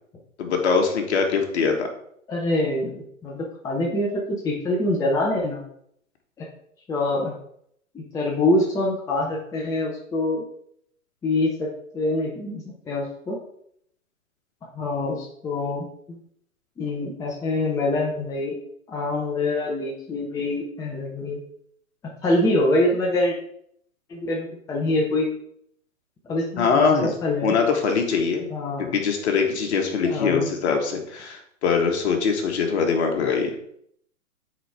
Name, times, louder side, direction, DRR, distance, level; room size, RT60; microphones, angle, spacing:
voice 1, 0.4-1.9 26.6-27.1 27.4-28.5 28.8-33.5, left 5 dB, 50° left, 3 dB, 1.5 m, -22 dB
voice 2, 2.3-5.6 6.4-6.5 6.9-7.3 7.9-10.4 11.2-11.7 11.9-13.4 14.8-16.2 16.8-18.5 18.9-21.4 22.2-23.4 24.1-25.3 26.2-27.6 28.5-28.9 30.0-30.5, left 2 dB, 10° left, -2 dB, 0.7 m, -25 dB
9.0 x 4.3 x 3.5 m, 0.69 s
figure-of-eight pair, 125°, 42 cm